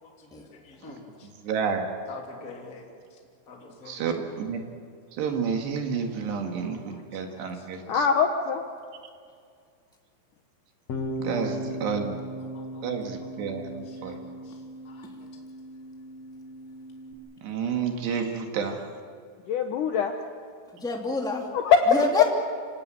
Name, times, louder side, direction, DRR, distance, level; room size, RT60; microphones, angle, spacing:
voice 1, 0.0-1.3 2.1-2.8 3.1-3.2 3.5-4.1 6.6-7.0 7.3-7.9 11.4-11.5 11.9-12.0 12.5-12.9 13.2-15.3, left 3 dB, 20° left, 0 dB, 3.0 m, -47 dB
voice 2, 1.4-1.9 3.9-4.6 5.1-8.1 11.2-12.2 12.8-14.3 17.4-18.8, right 6 dB, 70° right, 4 dB, 4.0 m, -30 dB
voice 3, 7.9-8.6 19.5-20.1 21.5-22.2, left 6 dB, 85° left, 5 dB, 1.8 m, -22 dB
Bass guitar, 10.9-17.1, equal, 50° left, 2.3 m, -37 dB
voice 4, 11.2-11.6 20.7-21.5 21.9-22.2, left 2 dB, ahead, 1 dB, 1.2 m, -29 dB
26.5 x 18.0 x 9.2 m, 2.2 s
omnidirectional pair, 5.3 m